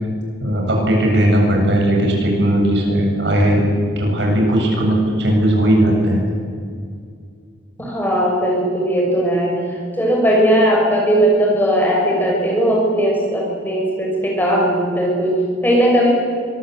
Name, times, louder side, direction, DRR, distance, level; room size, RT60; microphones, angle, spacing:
voice 1, 0.4-3.6 4.0-6.2, right 1 dB, 75° right, 0 dB, 7.6 m, -17 dB
voice 2, 7.8-16.1, equal, 10° left, -2 dB, 6.4 m, -18 dB
25.0 x 20.5 x 8.3 m, 2.2 s
head